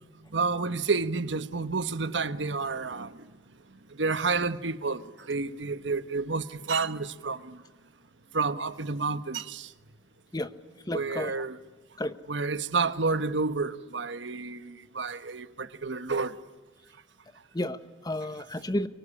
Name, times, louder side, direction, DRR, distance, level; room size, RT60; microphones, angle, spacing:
voice 1, 0.3-3.3 3.7-7.6 8.3-9.7 10.9-11.6 12.3-16.3, right 4 dB, 80° right, 1.3 m, -30 dB
voice 2, 10.9-11.4 12.0-12.1 17.5-18.9, left 1 dB, 20° left, 1.2 m, -32 dB
25.0 x 23.5 x 10.0 m
head